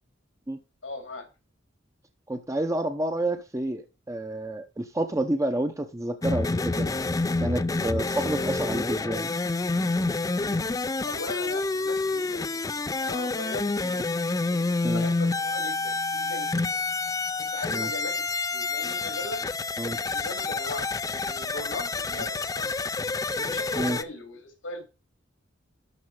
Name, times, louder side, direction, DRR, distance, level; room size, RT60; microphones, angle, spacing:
voice 1, 0.8-1.2 10.4-10.5 11.0-13.7 14.5-16.7 17.4-19.4 20.0-20.9 21.2-22.8 23.3-24.8, left 2 dB, 90° left, 2 dB, 3.0 m, -39 dB
voice 2, 2.3-6.9 7.4-9.3 13.8-13.9 14.8-15.0 17.7-17.9 19.8-20.0 23.8-24.0, right 1 dB, 15° right, 6 dB, 0.7 m, -29 dB
sound 1, 6.2-24.0, left 3 dB, 20° left, 0.4 m, -28 dB
12.0 x 5.0 x 4.9 m, 0.28 s
head